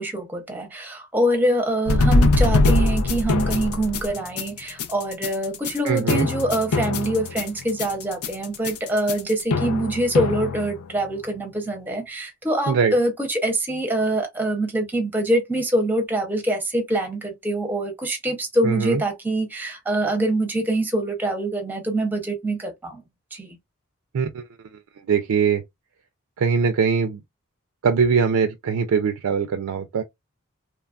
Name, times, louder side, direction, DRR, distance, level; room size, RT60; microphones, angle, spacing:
voice 1, 0.0-23.0 23.3-23.6, right 1 dB, 10° right, 0.6 m, -24 dB
sound 1, 1.9-11.1, left 2 dB, 85° left, 0.5 m, -22 dB
voice 2, 5.8-6.3 12.7-12.9 18.6-19.0 24.1-24.4 25.1-25.6 26.4-27.2 27.8-30.0, right 6 dB, 85° right, 0.4 m, -21 dB
3.0 x 2.2 x 2.3 m
head